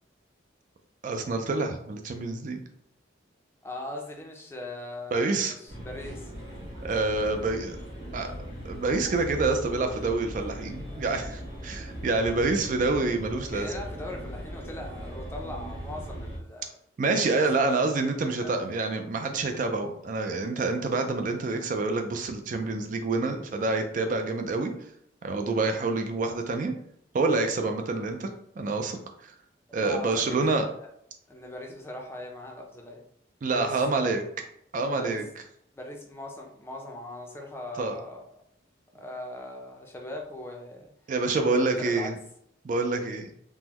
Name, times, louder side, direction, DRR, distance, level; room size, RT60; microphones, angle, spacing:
voice 1, 1.0-2.6 5.1-5.5 6.8-7.8 8.1-8.3 8.6-13.7 17.0-24.7 25.2-26.7 27.1-28.3 28.6-29.0 29.7-30.6 33.4-34.2 34.7-35.2 37.8-38.0 41.1-42.1 42.6-43.3, right 3 dB, 45° right, 5 dB, 0.3 m, -27 dB
voice 2, 3.6-6.3 13.5-16.7 17.1-17.5 18.2-19.0 29.8-30.9 31.3-33.0 33.4-34.1 35.0-35.3 35.7-38.3 38.9-40.9 41.4-42.1, left 1 dB, 15° left, 1 dB, 0.5 m, -40 dB
sound 1, 5.7-16.4, equal, 65° right, 1.4 m, -39 dB
3.6 x 2.1 x 2.9 m, 0.70 s
head